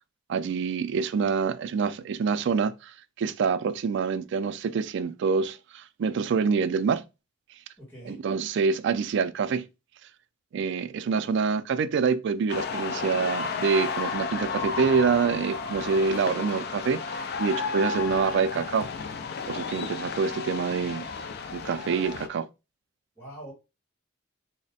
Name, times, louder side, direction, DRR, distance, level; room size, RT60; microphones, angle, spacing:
voice 1, 0.3-7.0 8.1-9.7 10.5-18.9 19.5-21.1 21.5-22.5, right 5 dB, 65° right, 0.3 m, -26 dB
voice 2, 7.8-8.2 23.2-23.5, right 1 dB, 10° left, 2.1 m, -43 dB
sound 1, 12.5-22.3, left 5 dB, 55° left, 0.4 m, -33 dB
3.2 x 2.1 x 4.0 m
head